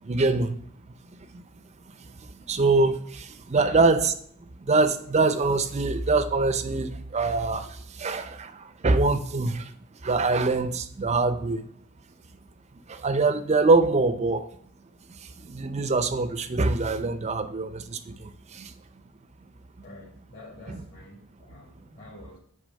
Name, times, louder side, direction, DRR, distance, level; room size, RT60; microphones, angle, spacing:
voice 1, 0.0-0.6 1.1-1.4 2.0-4.1 4.7-9.7 10.0-11.7 12.9-14.5 15.2-18.7 20.7-20.8, right 3 dB, 30° right, 11 dB, 0.5 m, -24 dB
voice 2, 3.5-3.8 19.8-22.4, left 2 dB, 45° left, -7 dB, 2.2 m, -46 dB
8.2 x 3.5 x 5.2 m, 0.64 s
head